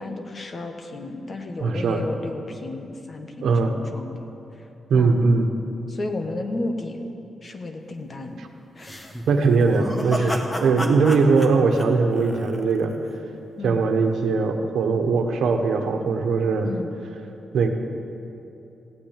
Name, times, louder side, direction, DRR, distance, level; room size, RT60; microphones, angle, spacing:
voice 1, 0.0-4.2 4.5-4.7 4.9-5.2 5.9-7.0 7.4-8.4 8.7-9.2 10.2-10.4 13.6-13.9 16.6-16.9, left 2 dB, 35° left, 5 dB, 1.3 m, -33 dB
voice 2, 1.6-2.0 3.4-3.8 4.9-5.5 9.3-12.9 13.6-16.7 17.5-17.7, right 4 dB, 85° right, 4 dB, 1.3 m, -20 dB
sound 1, 8.8-13.0, equal, 15° left, 1.4 m, -32 dB
16.0 x 8.9 x 9.0 m, 2.9 s
wide cardioid pair, 125°, 0 cm